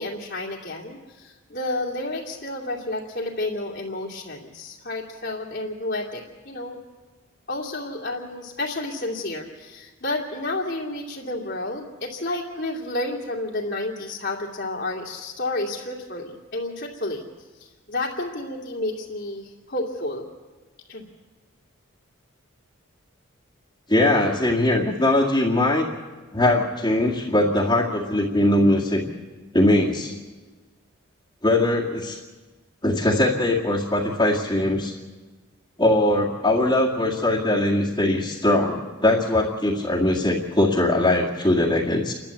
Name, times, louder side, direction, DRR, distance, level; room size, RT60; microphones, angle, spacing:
voice 1, 0.0-6.8 7.5-17.3 17.6-20.2 20.9-21.1, left 2 dB, 50° left, -4 dB, 2.6 m, -31 dB
voice 2, 23.9-25.9 26.3-29.1 29.5-30.1 31.4-32.2 32.8-34.9 35.8-42.1, left 1 dB, 20° left, -4 dB, 2.1 m, -21 dB
29.5 x 12.0 x 8.5 m, 1.3 s
head